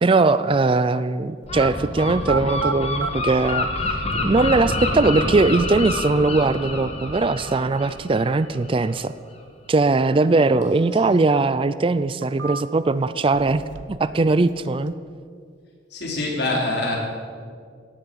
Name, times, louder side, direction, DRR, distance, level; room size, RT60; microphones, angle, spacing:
voice 1, 0.0-9.1 9.7-13.6 13.9-14.9, right 3 dB, 25° right, 15 dB, 0.4 m, -20 dB
sound 1, 1.4-1.7 2.2-3.1 4.1-4.2 4.9-6.0 9.9-11.0 11.3-11.4 12.0-12.9 13.3-14.1 14.3-14.9, right 5 dB, 70° right, 0.7 m, -33 dB
Gull seagull, 1.5-9.0, left 2 dB, 35° left, 1.9 m, -28 dB
voice 2, 15.9-16.9, left 2 dB, 60° left, -1 dB, 3.9 m, -24 dB
17.0 x 9.2 x 7.9 m, 2.2 s
head